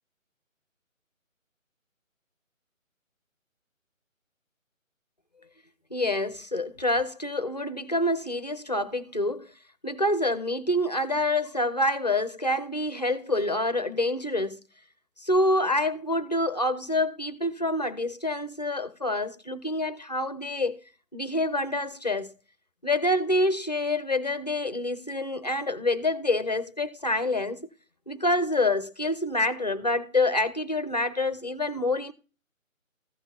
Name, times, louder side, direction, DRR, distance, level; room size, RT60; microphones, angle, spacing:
voice 1, 5.9-9.5 9.8-14.6 15.2-20.8 21.1-22.3 22.8-27.6 28.1-32.1, left 1 dB, 30° left, 0.7 m, -27 dB
15.5 x 5.5 x 2.7 m
figure-of-eight pair, 155°, 41 cm